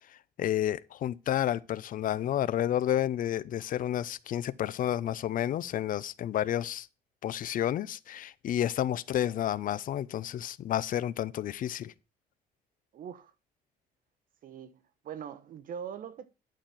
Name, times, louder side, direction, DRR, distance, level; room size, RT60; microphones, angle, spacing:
voice 1, 0.4-6.9 7.2-11.9, left 11 dB, 55° left, 0.6 m, -30 dB
voice 2, 12.9-13.3 14.4-16.3, right 8 dB, 55° right, 1.1 m, -42 dB
11.5 x 4.4 x 7.5 m
cardioid pair, 110°, 17 cm